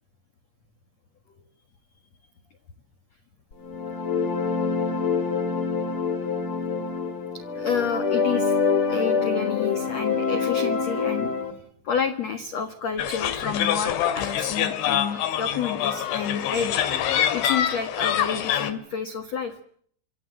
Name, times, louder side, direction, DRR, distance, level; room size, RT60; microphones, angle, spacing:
sound 1, 3.6-11.5, left 5 dB, 35° left, 3.1 m, -25 dB
voice 1, 7.6-8.6 8.9-11.3 11.8-17.0 17.3-19.6, left 6 dB, 55° left, 10 dB, 1.9 m, -29 dB
sound 2, 13.0-18.7, left 10 dB, 80° left, 4.5 m, -25 dB
26.5 x 25.0 x 7.8 m, 0.63 s
omnidirectional pair, 5.3 m